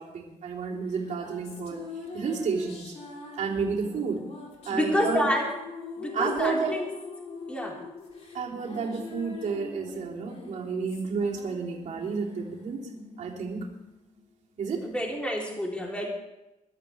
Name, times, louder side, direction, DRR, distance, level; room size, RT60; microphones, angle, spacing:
voice 1, 0.0-1.8 2.1-2.9 3.4-4.2 4.6-5.3 6.1-6.8 8.3-12.9 13.2-13.7 14.6-14.9, right 5 dB, 65° right, -3 dB, 3.4 m, -31 dB
sound 1, 0.9-14.6, left 4 dB, 50° left, 3.5 m, -42 dB
voice 2, 4.7-5.4 6.0-6.9 7.5-7.8 14.8-16.1, equal, 10° left, -2 dB, 3.3 m, -28 dB
22.0 x 12.5 x 3.4 m, 0.94 s
cardioid pair, 140°, 14 cm